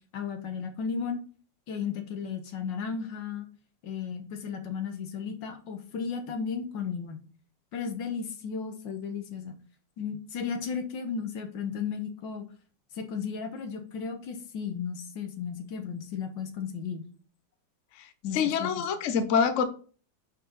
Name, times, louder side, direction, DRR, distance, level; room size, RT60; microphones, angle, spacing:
voice 1, 0.1-1.2 1.7-3.5 3.8-7.2 7.7-9.6 10.0-12.4 12.9-17.0 18.2-18.7, left 6 dB, 85° left, 1.8 m, -34 dB
voice 2, 18.3-19.6, left 6 dB, 50° left, 1.0 m, -25 dB
10.0 x 4.3 x 4.0 m
omnidirectional pair, 2.0 m